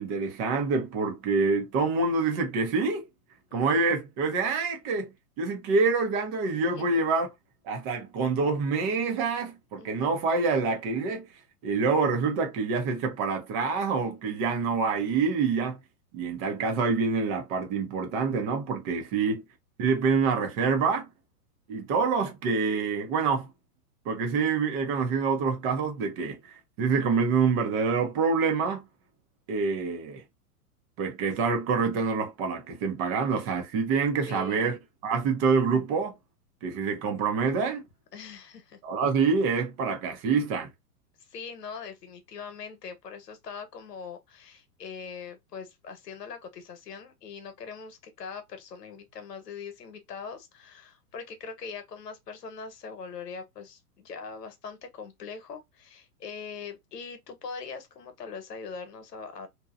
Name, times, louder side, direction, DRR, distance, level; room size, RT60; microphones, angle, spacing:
voice 1, 0.0-3.0 3.5-7.3 7.6-11.2 11.6-15.8 16.1-19.4 19.8-21.1 21.7-23.5 24.1-26.4 26.8-28.8 29.5-30.2 31.0-34.8 35.0-36.1 36.6-37.8 38.8-40.7, right 4 dB, 25° right, 0.6 m, -26 dB
voice 2, 3.5-3.9 6.5-7.0 9.8-10.1 19.2-19.3 34.3-34.8 38.1-38.8 41.2-59.5, left 5 dB, 85° left, 1.0 m, -42 dB
2.7 x 2.2 x 2.4 m
hypercardioid pair, 120°, 47 cm